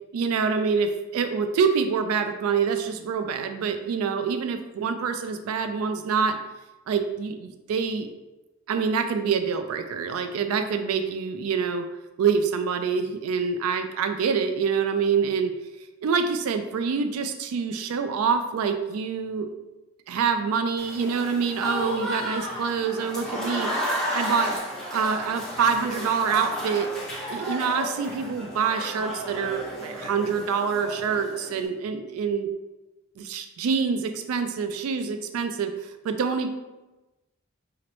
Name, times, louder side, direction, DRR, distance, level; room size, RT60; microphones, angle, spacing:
voice 1, 0.1-6.4 6.9-8.1 8.7-11.9 12.2-15.5 16.0-19.5 20.1-23.7 24.1-24.5 24.9-26.9 27.3-32.5 33.2-36.5, right 6 dB, 85° right, 8 dB, 0.3 m, -26 dB
Applause / Crowd, 20.8-31.7, equal, 5° left, 0.7 m, -33 dB
4.9 x 3.0 x 3.0 m, 1.1 s
head